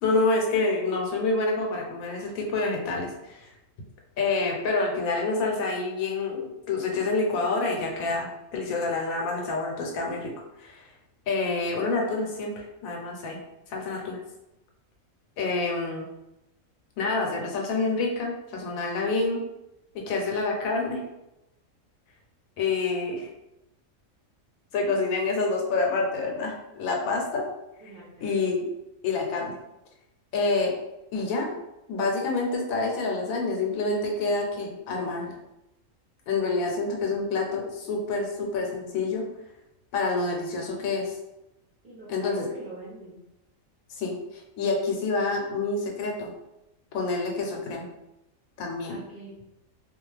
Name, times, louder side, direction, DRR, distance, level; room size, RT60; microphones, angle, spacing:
voice 1, 0.0-3.4 4.2-10.3 10.6-10.9 11.3-13.4 13.7-14.2 15.4-16.1 17.0-19.4 19.9-21.0 22.6-23.3 24.7-27.4 28.2-28.7 29.0-29.5 30.3-30.7 31.1-31.5 31.9-35.3 36.3-39.3 39.9-41.1 42.1-42.5 44.0-46.3 46.9-47.9 48.6-49.0, left 3 dB, 90° left, 0 dB, 1.0 m, -27 dB
voice 2, 27.8-28.3 41.8-43.2 48.9-49.3, right 2 dB, 50° right, -8 dB, 0.7 m, -43 dB
2.4 x 2.3 x 3.1 m, 0.92 s
omnidirectional pair, 1.4 m